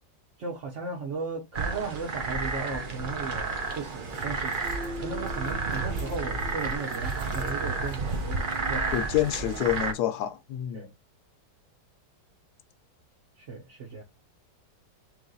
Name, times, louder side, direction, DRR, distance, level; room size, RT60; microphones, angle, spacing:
voice 1, 0.4-4.6 5.0-9.0 10.7-10.9 13.4-14.0, right 4 dB, 50° right, 1.0 m, -36 dB
sound 1, 1.5-9.9, right 3 dB, 70° right, 0.4 m, -31 dB
sound 2, 3.5-9.8, right 3 dB, 35° right, 1.3 m, -50 dB
voice 2, 8.9-10.9, left 12 dB, 70° left, 1.1 m, -28 dB
3.3 x 3.2 x 3.7 m
omnidirectional pair, 1.9 m